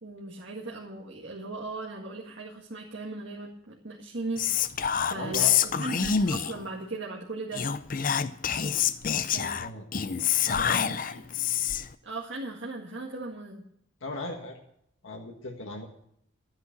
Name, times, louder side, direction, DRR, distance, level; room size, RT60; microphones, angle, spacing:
voice 1, 0.0-4.4 5.1-7.6 9.3-9.5 10.9-11.1 12.1-13.6, right 2 dB, 60° right, -4 dB, 1.9 m, -38 dB
Whispering, 4.4-6.7 7.5-11.9, left 8 dB, 40° left, 0.5 m, -27 dB
voice 2, 5.1-5.5 9.6-9.8 10.4-10.8 14.0-14.6 15.0-15.8, left 2 dB, 80° left, 1 dB, 1.7 m, -36 dB
13.5 x 9.5 x 6.0 m, 0.71 s
head